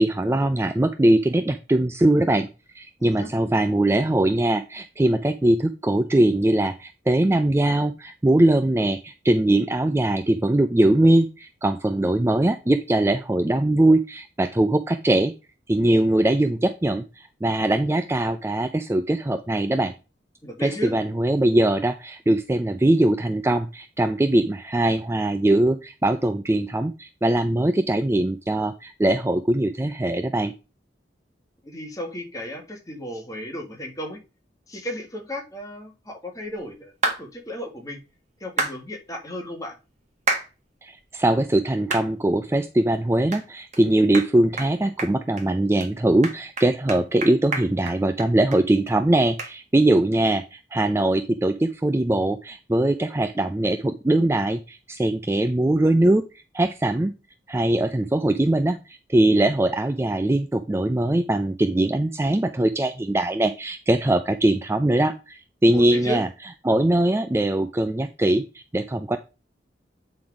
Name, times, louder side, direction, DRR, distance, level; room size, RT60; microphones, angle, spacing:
voice 1, 0.0-2.5 2.8-15.3 15.7-19.9 20.6-30.5 40.8-56.2 56.5-57.1 57.5-66.3 66.6-69.2, right 1 dB, 15° right, 9 dB, 0.4 m, -21 dB
voice 2, 20.4-20.9 31.6-34.2 34.7-36.9 37.2-38.0 38.4-39.8 65.7-66.2, equal, 20° left, 1 dB, 1.8 m, -34 dB
sound 1, 37.0-37.2 38.6-38.8 40.3-40.5 41.0-41.1 41.9-42.1 42.5-42.6 43.3-43.4 43.7-43.8 44.1-44.3 44.6-44.7 45.0-45.4 45.8-45.9 46.2-48.6 48.9-49.0 49.4-49.5, right 3 dB, 40° right, 1.6 m, -27 dB
8.7 x 3.9 x 4.8 m, 0.29 s
head